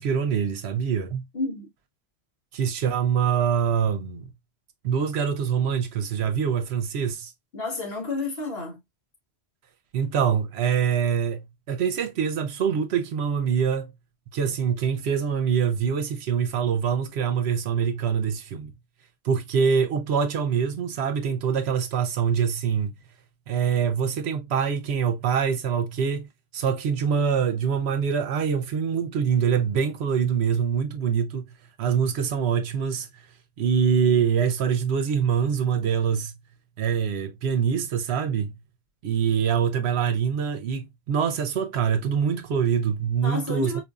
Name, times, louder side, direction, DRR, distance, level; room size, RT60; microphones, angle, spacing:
voice 1, 0.0-1.2 2.5-4.3 4.8-7.3 9.9-13.9 14.3-18.7 19.2-22.9 23.5-26.3 26.5-31.5 31.8-33.1 33.6-36.3 36.8-38.5 39.0-43.8, right 7 dB, 75° right, 0.9 m, -24 dB
voice 2, 1.3-1.7 7.5-8.8 43.2-43.8, left 2 dB, 60° left, 1.4 m, -30 dB
4.3 x 2.6 x 2.3 m
omnidirectional pair, 1.1 m